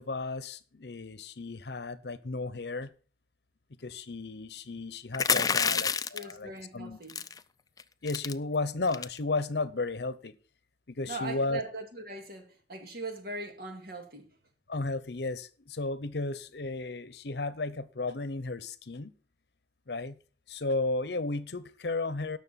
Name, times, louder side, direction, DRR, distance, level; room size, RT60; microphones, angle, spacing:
voice 1, 0.0-2.9 3.8-7.0 8.0-10.4 10.9-11.6 14.7-19.1 19.9-20.2 20.5-22.4, left 3 dB, 65° left, 0.8 m, -34 dB
sound 1, 5.1-6.3 7.1-7.4 7.8-7.9 8.1-8.3 8.9-9.2, left 6 dB, 20° left, 0.4 m, -28 dB
voice 2, 5.3-5.8 6.1-7.2 11.0-14.4, right 2 dB, 60° right, 2.3 m, -40 dB
18.0 x 6.5 x 4.1 m
head